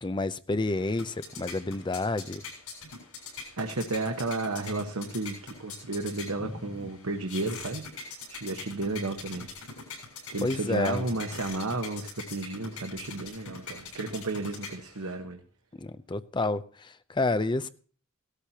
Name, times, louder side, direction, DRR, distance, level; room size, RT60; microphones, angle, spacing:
voice 1, 0.0-2.4 6.4-6.5 6.8-6.9 10.4-11.0 15.7-17.7, left 2 dB, 20° left, 12 dB, 0.5 m, -29 dB
sound 1, 0.7-15.1, left 4 dB, 90° left, 7.1 m, -43 dB
voice 2, 3.6-7.8 8.3-9.5 10.3-15.4, right 2 dB, 85° right, 4 dB, 1.2 m, -33 dB
17.0 x 13.0 x 2.9 m, 0.43 s
head